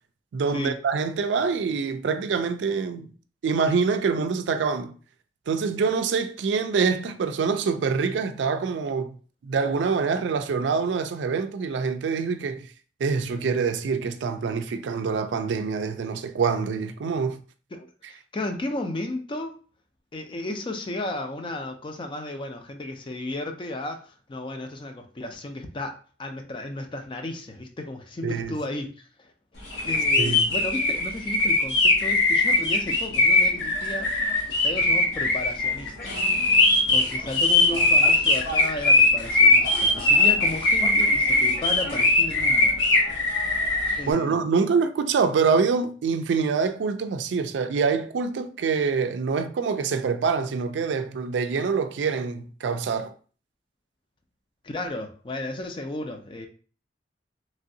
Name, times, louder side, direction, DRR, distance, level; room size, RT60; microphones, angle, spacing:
voice 1, 0.3-3.1 3.4-4.9 5.5-9.2 9.4-12.7 13.0-17.4 28.2-28.5 30.2-30.4 44.1-53.1, right 5 dB, 85° right, 0.4 m, -25 dB
voice 2, 17.7-19.5 20.1-28.9 29.2-29.3 29.8-34.1 34.6-36.2 36.9-42.7 44.0-44.4 54.6-56.5, left 1 dB, 30° left, 0.4 m, -34 dB
sound 1, 29.7-44.0, left 2 dB, 80° left, 0.9 m, -20 dB
sound 2, 35.1-42.0, left 1 dB, 55° left, 0.8 m, -40 dB
3.1 x 2.6 x 2.6 m
head